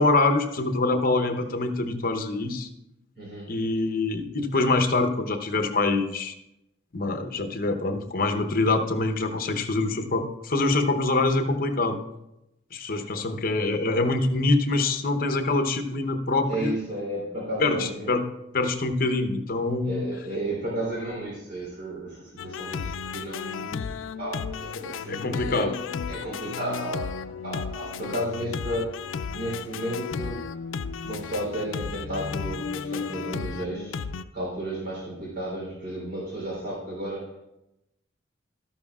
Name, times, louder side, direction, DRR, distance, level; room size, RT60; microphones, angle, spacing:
voice 1, 0.0-2.7 3.5-6.3 6.9-12.0 12.7-16.7 17.6-18.2 18.5-20.1 25.1-25.7, left 2 dB, 50° left, 8 dB, 0.9 m, -25 dB
voice 2, 3.1-3.5 12.8-13.0 16.5-18.1 19.8-25.7 26.1-28.9 29.3-30.4 31.0-34.0 34.3-37.3, right 1 dB, 50° right, -4 dB, 3.4 m, -33 dB
sound 1, 22.4-34.2, left 6 dB, 90° left, 0.4 m, -34 dB
13.0 x 11.0 x 2.4 m, 0.88 s
head